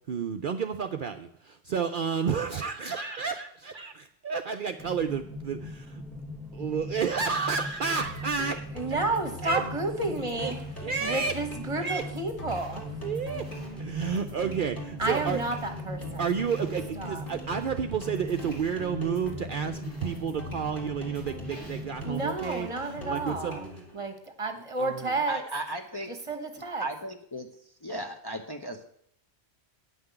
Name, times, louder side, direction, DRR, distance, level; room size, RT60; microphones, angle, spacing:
voice 1, 0.1-5.7 6.6-9.0 9.4-9.6 10.3-10.5 10.8-11.4 11.8-12.0 13.0-13.5 13.8-15.4 16.2-23.8 24.8-25.2, right 6 dB, 55° right, 6 dB, 0.7 m, -31 dB
sound 1, 4.8-22.3, equal, ahead, 1.0 m, -40 dB
sound 2, 8.0-24.0, left 1 dB, 50° left, 2.5 m, -43 dB
voice 2, 8.7-10.6 11.0-12.8 15.0-16.3 17.0-17.2 22.0-23.7 23.9-25.4 26.1-26.8, right 2 dB, 30° right, 6 dB, 1.3 m, -31 dB
Coin (dropping), 9.5-12.2 12.5-14.9 15.1-16.9 17.2-18.8 19.3-19.4 19.7-20.4 20.7-23.1, equal, 90° left, 6.0 m, -55 dB
voice 3, 25.3-26.1 26.8-27.5 27.8-28.9, right 1 dB, 25° left, 3 dB, 0.7 m, -35 dB
9.6 x 5.9 x 7.9 m, 0.68 s
omnidirectional pair, 1.1 m